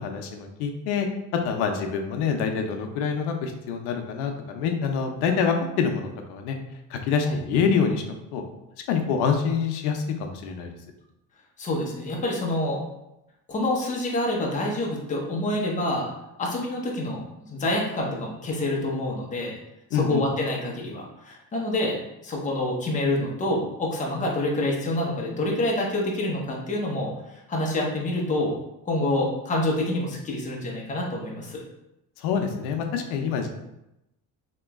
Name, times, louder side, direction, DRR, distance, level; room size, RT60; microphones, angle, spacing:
voice 1, 0.0-6.6 6.9-8.0 8.3-8.4 8.9-10.7 19.9-20.2 32.2-33.5, left 6 dB, 85° left, 4 dB, 0.6 m, -26 dB
voice 2, 11.6-12.8 13.5-16.1 16.4-17.2 17.5-19.6 19.9-22.0 22.2-27.1 27.5-28.6 28.9-31.6, left 1 dB, 20° left, -2 dB, 0.8 m, -27 dB
3.0 x 3.0 x 3.5 m, 0.88 s
cardioid pair, 135°, 38 cm